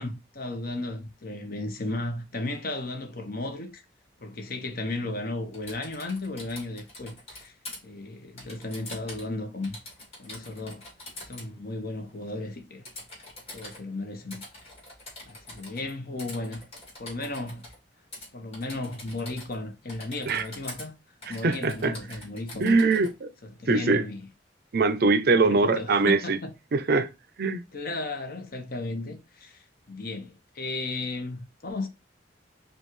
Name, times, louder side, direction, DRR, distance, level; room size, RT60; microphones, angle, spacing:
voice 1, 0.0-3.8 4.2-7.5 7.8-9.8 10.2-10.8 11.2-12.8 13.5-14.4 15.3-16.6 17.0-17.7 18.3-20.9 21.3-22.8 23.4-24.3 25.4-26.5 27.7-31.9, left 2 dB, 50° left, 1.0 m, -35 dB
Typing, 5.5-7.8 8.4-9.3 9.6-11.5 12.8-13.8 14.3-15.9 16.2-17.8 18.1-18.3 18.5-19.6 19.9-20.9 21.2-23.1, left 2 dB, 35° left, 2.5 m, -44 dB
voice 2, 21.4-21.9 22.6-23.3 23.7-24.0 24.7-26.4 26.7-27.1 27.4-27.6, right 3 dB, 55° right, 0.5 m, -22 dB
5.2 x 2.4 x 3.1 m
head